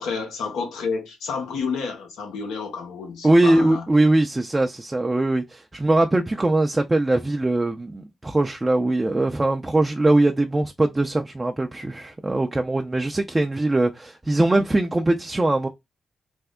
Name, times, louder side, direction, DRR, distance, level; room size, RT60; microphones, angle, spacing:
voice 1, 0.0-3.8, left 5 dB, 85° left, 0.9 m, -30 dB
voice 2, 3.2-15.7, right 2 dB, 25° right, 0.5 m, -21 dB
3.4 x 2.0 x 3.6 m
supercardioid pair, 45°, 0 cm